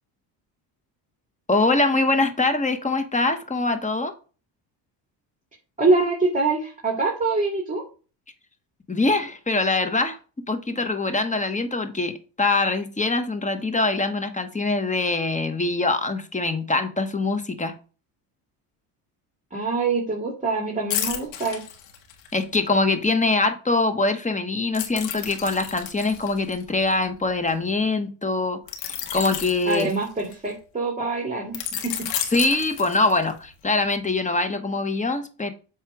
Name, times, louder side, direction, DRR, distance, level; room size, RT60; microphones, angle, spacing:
voice 1, 1.5-4.1 8.9-10.2 10.5-17.7 22.3-29.9 32.3-35.5, left 3 dB, 15° left, 1.1 m, -23 dB
voice 2, 5.8-7.8 19.5-21.6 29.7-31.7, right 3 dB, 15° right, 2.5 m, -24 dB
sound 1, 20.9-22.4 24.7-27.5 28.7-30.5 31.5-33.4 33.8-34.0, left 10 dB, 85° left, 1.7 m, -32 dB
8.1 x 3.2 x 6.1 m
supercardioid pair, 95°, 46 cm